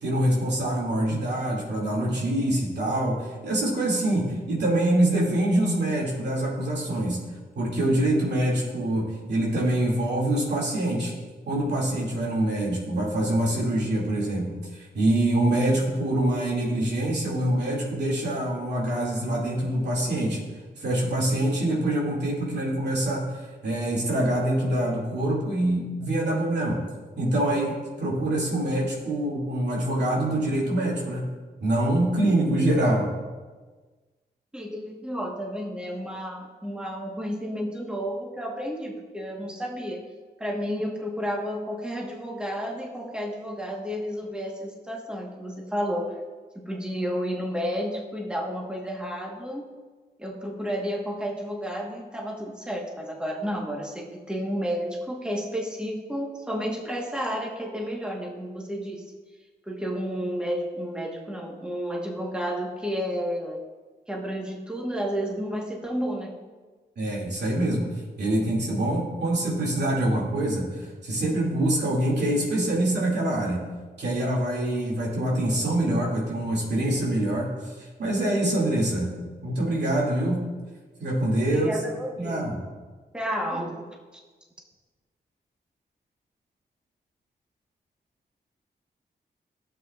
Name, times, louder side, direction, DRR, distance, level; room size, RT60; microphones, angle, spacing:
voice 1, 0.0-7.2 7.6-11.1 11.5-20.4 20.8-26.8 27.2-31.3 31.6-33.1 67.0-67.9 68.2-73.7 74.0-77.5 77.8-79.2 79.4-80.4 81.0-81.7 82.2-82.6, right 1 dB, 75° right, -4 dB, 2.4 m, -25 dB
voice 2, 34.5-40.1 40.4-46.2 46.5-49.6 50.2-59.0 59.7-63.6 64.1-66.3 81.5-82.5 83.1-83.8, equal, 5° right, -1 dB, 1.3 m, -31 dB
12.0 x 7.7 x 2.4 m, 1.3 s
cardioid pair, 65°, 18 cm